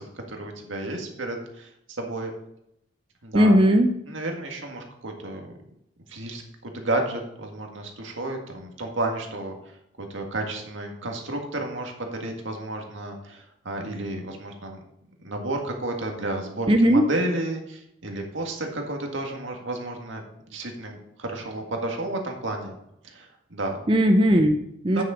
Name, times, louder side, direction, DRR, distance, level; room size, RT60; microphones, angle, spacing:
voice 1, 0.0-1.7 2.0-2.3 3.2-3.6 4.1-5.5 6.1-14.8 15.2-22.8 23.0-23.8 24.9-25.0, right 2 dB, 80° right, 2 dB, 1.8 m, -32 dB
voice 2, 3.3-3.9 16.7-17.1 23.9-25.0, equal, 25° right, 4 dB, 0.6 m, -18 dB
9.2 x 6.5 x 5.0 m, 0.79 s
head